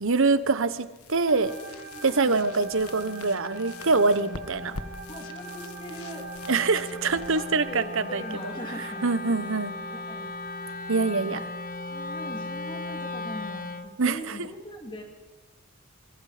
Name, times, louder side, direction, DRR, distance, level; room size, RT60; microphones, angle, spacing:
voice 1, 0.0-1.5 2.0-4.8 6.5-8.2 9.0-9.7 10.9-11.5 14.0-14.4, right 3 dB, 60° right, 13 dB, 1.1 m, -24 dB
sound 1, 0.9-8.7, left 4 dB, 80° left, 1.3 m, -46 dB
voice 2, 1.3-2.4 5.1-6.3 7.0-9.5 9.9-10.3 11.3-11.4 11.9-15.0, left 1 dB, 20° left, 2 dB, 2.9 m, -41 dB
sound 2, 1.3-13.4, right 3 dB, 45° right, 4.0 m, -44 dB
Wind instrument woodwind instrument, 2.4-14.0, left 3 dB, 40° left, 1.0 m, -38 dB
26.5 x 24.0 x 5.1 m, 1.1 s
head